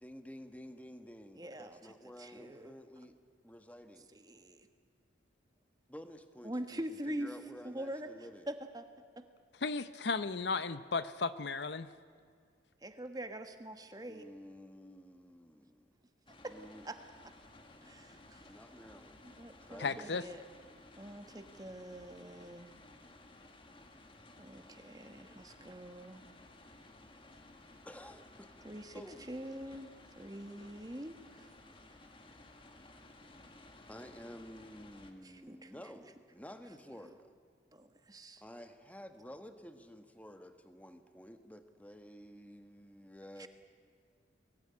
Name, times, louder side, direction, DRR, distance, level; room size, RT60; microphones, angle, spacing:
voice 1, 0.0-3.1 3.4-4.1 5.9-6.6 6.9-8.5 14.1-15.5 16.4-16.8 18.5-19.2 19.6-20.2 27.8-28.5 28.9-29.3 33.9-37.3 38.4-43.5, equal, 10° left, 8 dB, 1.3 m, -51 dB
voice 2, 1.3-2.7 4.1-4.7 6.4-7.4 7.6-8.9 12.8-14.3 16.4-16.5 16.8-17.3 17.8-18.5 19.2-20.4 21.0-22.7 24.4-26.2 28.6-29.0 29.3-31.2 35.2-35.8 37.7-38.4 43.4-43.5, right 1 dB, 20° right, 8 dB, 1.3 m, -44 dB
voice 3, 9.6-11.9 19.8-20.2, left 4 dB, 60° left, 13 dB, 0.7 m, -35 dB
sound 1, 16.3-35.1, left 2 dB, 25° left, 1.8 m, -57 dB
22.5 x 17.5 x 9.7 m, 2.2 s
head